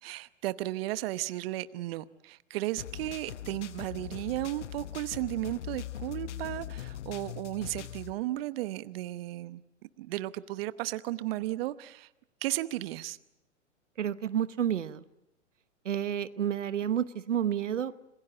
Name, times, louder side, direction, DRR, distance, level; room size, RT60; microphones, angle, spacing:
voice 1, 0.0-9.6 10.0-12.1 12.4-13.2, right 16 dB, 55° right, 1.0 m, -34 dB
sound 1, 2.8-8.1, left 11 dB, 75° left, 1.0 m, -41 dB
voice 2, 14.0-15.0 15.8-17.9, right 9 dB, 80° right, 1.0 m, -30 dB
26.5 x 21.0 x 8.8 m
hypercardioid pair, 110°, 36 cm